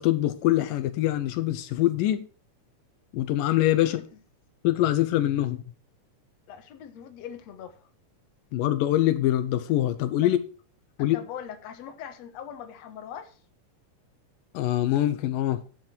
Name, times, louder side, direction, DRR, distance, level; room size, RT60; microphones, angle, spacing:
voice 1, 0.0-2.3 3.1-4.0 4.6-5.7 8.5-10.4 11.0-11.2 14.5-15.6, left 14 dB, 85° left, 11 dB, 2.6 m, -24 dB
voice 2, 3.8-4.2 6.5-7.9 10.2-10.3 11.0-13.4, left 9 dB, 60° left, 7 dB, 2.3 m, -41 dB
10.5 x 7.9 x 4.5 m, 0.39 s
omnidirectional pair, 3.9 m